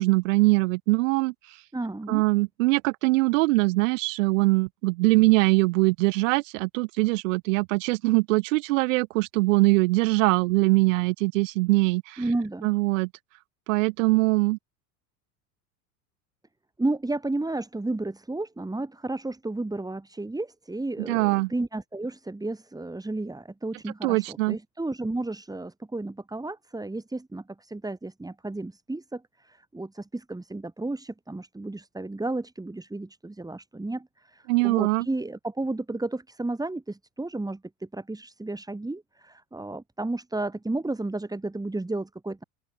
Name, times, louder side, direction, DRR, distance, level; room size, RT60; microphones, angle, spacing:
voice 1, 0.0-1.3 2.1-12.2 12.6-13.1 13.7-14.6 21.1-21.5 24.0-24.6 34.5-35.0, right 23 dB, 60° right, 0.7 m, -22 dB
voice 2, 1.7-2.3 12.2-12.7 16.8-42.4, right 2 dB, 10° right, 5.4 m, -32 dB
open air
figure-of-eight pair, 80°, 44 cm